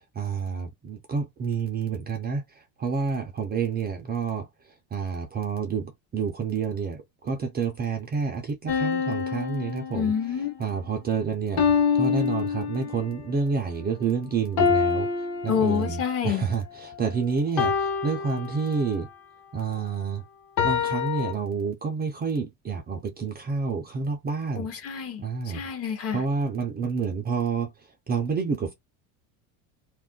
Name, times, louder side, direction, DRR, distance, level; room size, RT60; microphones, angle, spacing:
voice 1, 0.2-4.5 4.9-10.1 10.6-15.1 15.4-19.1 19.5-20.2 20.6-24.7 25.2-25.6 26.1-27.7 28.1-28.7, right 5 dB, 25° right, 0.3 m, -29 dB
sound 1, 8.7-10.5 11.6-13.2 14.6-16.2 17.6-19.1 20.6-21.3, left 6 dB, 55° left, 1.0 m, -26 dB
voice 2, 9.9-10.5 15.5-16.5 24.6-26.2, left 7 dB, 35° left, 0.6 m, -28 dB
2.4 x 2.1 x 3.5 m
supercardioid pair, 125°, 45 cm